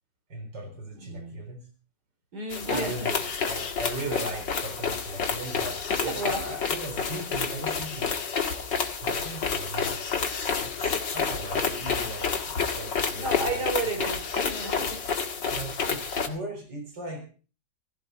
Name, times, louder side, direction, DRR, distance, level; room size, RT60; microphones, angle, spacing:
voice 1, 0.3-1.7 2.7-8.1 9.0-10.0 10.6-13.4 15.4-17.2, right 1 dB, 85° right, 4.9 m, -38 dB
voice 2, 0.9-1.4 2.3-3.1 5.9-6.5 13.1-15.2, right 2 dB, 65° right, 3.6 m, -33 dB
sound 1, 2.5-16.3, left 5 dB, 85° left, 2.6 m, -29 dB
16.0 x 16.0 x 4.1 m
omnidirectional pair, 1.9 m